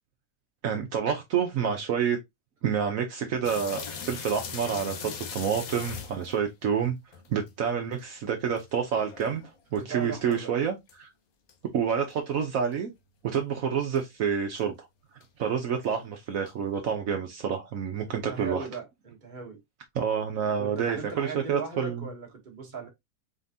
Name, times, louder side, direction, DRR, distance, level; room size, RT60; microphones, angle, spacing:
voice 1, 0.6-2.2 2.6-6.9 7.3-9.4 9.7-11.1 11.7-12.9 13.2-14.7 15.4-18.7 19.9-22.0, right 7 dB, 70° right, 1.1 m, -28 dB
sound 1, 3.4-7.5 7.9-8.0 8.6-9.8 10.3-10.4 10.9-11.0 11.5-11.6 12.1-12.2 12.7-12.8 13.3-13.4 14.0-14.1 14.6-14.7 15.2-15.3 15.8-15.9 16.5-16.6, left 6 dB, 75° left, 1.4 m, -40 dB
voice 2, 9.7-10.5 18.0-19.6 20.6-22.9, right 5 dB, 35° right, 1.4 m, -38 dB
4.2 x 3.7 x 2.7 m
omnidirectional pair, 1.5 m